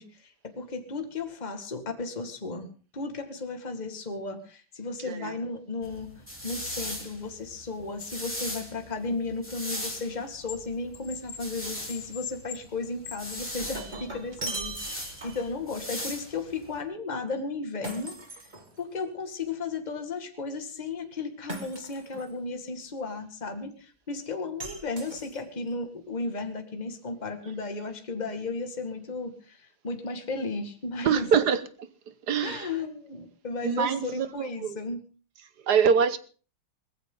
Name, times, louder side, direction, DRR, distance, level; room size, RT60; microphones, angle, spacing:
voice 1, 0.0-2.7 2.9-6.1 6.4-18.2 18.8-31.3 32.4-35.0, left 3 dB, 20° left, 2.0 m, -34 dB
sound 1, 5.8-16.8, left 1 dB, 5° left, 3.5 m, -39 dB
sound 2, 9.5-10.6 10.9-13.7 14.5-14.6, left 7 dB, 70° left, 2.4 m, -42 dB
Shatter, 13.4-15.6 17.8-19.1 21.5-22.3 24.6-25.7, right 2 dB, 20° right, 2.2 m, -39 dB
voice 2, 31.0-31.9 32.3-32.7 33.6-34.8 35.6-36.2, right 6 dB, 55° right, 1.5 m, -25 dB
21.0 x 15.0 x 3.9 m
omnidirectional pair, 2.3 m